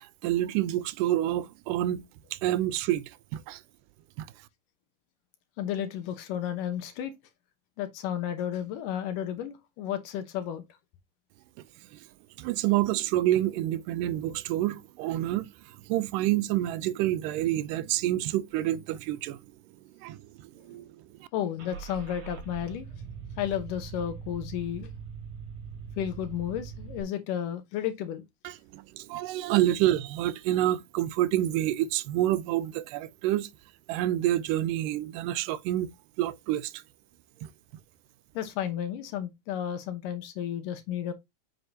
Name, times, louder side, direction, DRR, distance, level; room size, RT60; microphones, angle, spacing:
voice 1, 0.0-2.0 2.3-3.6 4.2-4.3 11.9-12.0 12.4-19.4 20.0-21.3 28.4-33.5 33.9-35.9 36.2-36.8 37.4-37.5, right 13 dB, 90° right, 2.2 m, -28 dB
voice 2, 5.6-7.1 7.8-10.6 21.3-22.9 23.4-24.9 26.0-28.2 38.3-41.1, left 10 dB, 85° left, 2.6 m, -32 dB
Car / Engine starting, 21.6-27.0, right 6 dB, 65° right, 3.8 m, -42 dB
7.9 x 5.5 x 2.7 m
omnidirectional pair, 3.7 m